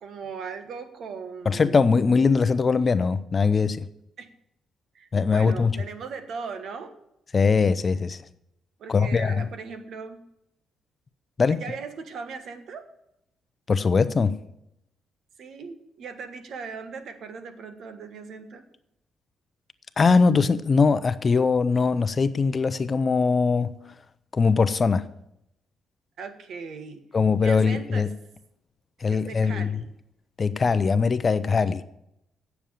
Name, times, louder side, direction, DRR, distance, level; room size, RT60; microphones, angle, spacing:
voice 1, 0.0-1.8 4.2-4.3 4.9-7.0 8.8-10.2 11.5-12.9 15.4-18.7 26.2-27.0 27.4-28.1 29.1-29.9, right 5 dB, 65° right, 1.5 m, -38 dB
voice 2, 1.5-3.8 5.1-5.8 7.3-8.2 8.9-9.5 11.4-11.6 13.7-14.3 20.0-23.7 24.3-25.1 27.1-28.1 29.0-29.8 30.4-31.8, left 5 dB, 35° left, 0.6 m, -21 dB
9.2 x 7.0 x 8.8 m
cardioid pair, 90°, 0 cm